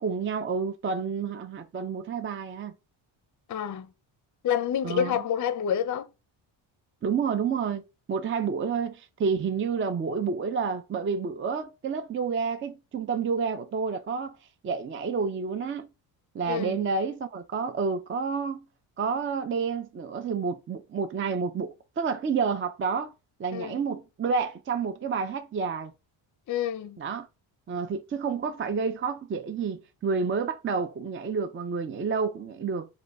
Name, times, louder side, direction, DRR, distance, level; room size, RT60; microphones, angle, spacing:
voice 1, 0.0-2.7 4.8-5.2 7.0-7.8 8.1-14.3 14.6-15.9 16.3-18.6 19.0-23.1 23.4-25.9 27.0-27.3 27.7-32.9, right 5 dB, 25° right, 0.4 m, -29 dB
voice 2, 3.5-3.9 4.4-6.1 16.5-16.8 23.5-23.8 26.5-27.0, left 9 dB, 40° left, 0.6 m, -28 dB
4.9 x 2.3 x 4.5 m
cardioid pair, 100°, 50 cm